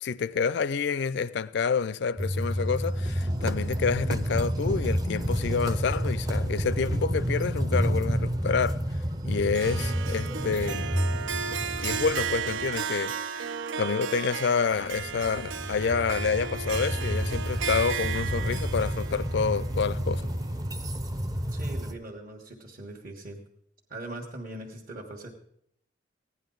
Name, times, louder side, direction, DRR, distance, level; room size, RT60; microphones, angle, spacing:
voice 1, 0.0-8.8 9.2-10.9 11.8-20.2, left 5 dB, 65° left, 0.4 m, -28 dB
sound 1, 2.2-12.8 14.7-21.9, equal, 20° right, 0.6 m, -30 dB
Harp, 9.5-20.8, right 6 dB, 85° right, 0.5 m, -34 dB
voice 2, 21.5-23.4 23.9-25.3, right 1 dB, 50° right, 1.3 m, -41 dB
16.0 x 10.0 x 3.9 m
head